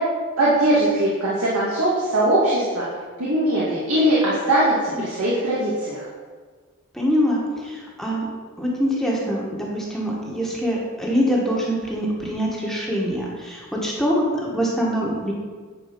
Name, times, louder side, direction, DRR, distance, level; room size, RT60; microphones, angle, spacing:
voice 1, 0.4-2.9 3.2-6.0, right 1 dB, 80° right, -7 dB, 1.9 m, -20 dB
voice 2, 6.9-8.3 8.6-15.3, equal, ahead, -4 dB, 1.4 m, -24 dB
9.8 x 4.5 x 5.9 m, 1.5 s
head